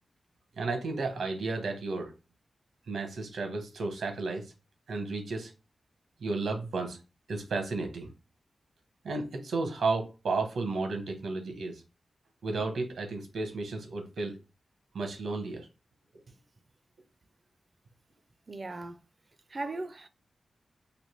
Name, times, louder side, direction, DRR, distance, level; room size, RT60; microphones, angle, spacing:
voice 1, 0.6-2.1 2.9-4.5 4.9-5.5 6.2-7.0 7.3-8.1 9.0-11.8 12.4-14.4 14.9-15.7, right 3 dB, 90° right, 0.9 m, -33 dB
voice 2, 18.5-19.0 19.5-20.1, right 2 dB, 35° right, 0.4 m, -37 dB
3.2 x 2.5 x 3.0 m
wide cardioid pair, 140°, 0 cm